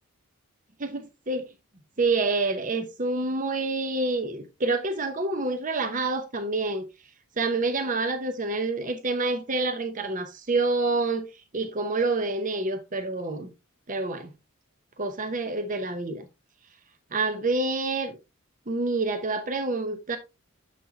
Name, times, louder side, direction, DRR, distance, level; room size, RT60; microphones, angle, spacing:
voice 1, 0.8-1.5 2.0-6.9 7.4-11.3 11.5-13.5 13.9-14.3 15.0-16.3 17.1-18.2 18.7-20.2, right 3 dB, 35° right, 0.9 m, -27 dB
7.1 x 6.2 x 2.8 m
head